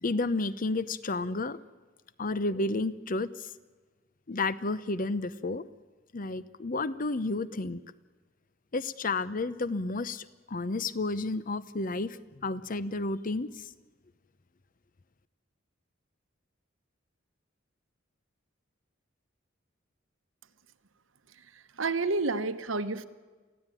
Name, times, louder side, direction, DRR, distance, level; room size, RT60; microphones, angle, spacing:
voice 1, 0.0-1.6 2.2-3.5 4.3-5.6 6.1-7.8 8.7-13.6, left 3 dB, 45° left, 16 dB, 0.8 m, -31 dB
voice 2, 21.8-23.1, right 3 dB, 80° right, 11 dB, 1.1 m, -29 dB
24.5 x 15.5 x 9.1 m, 1.4 s
head